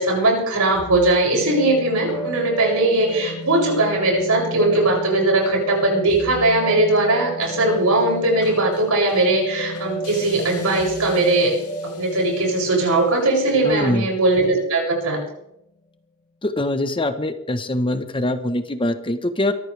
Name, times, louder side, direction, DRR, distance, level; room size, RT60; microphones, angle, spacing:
voice 1, 0.0-11.6 11.8-15.2, right 2 dB, 75° right, 0 dB, 7.4 m, -19 dB
sound 1, 0.7-15.2, left 1 dB, 85° left, 7.7 m, -33 dB
voice 2, 13.6-14.1 16.4-19.5, left 1 dB, 25° left, 8 dB, 1.2 m, -23 dB
23.5 x 14.5 x 3.5 m, 0.78 s
head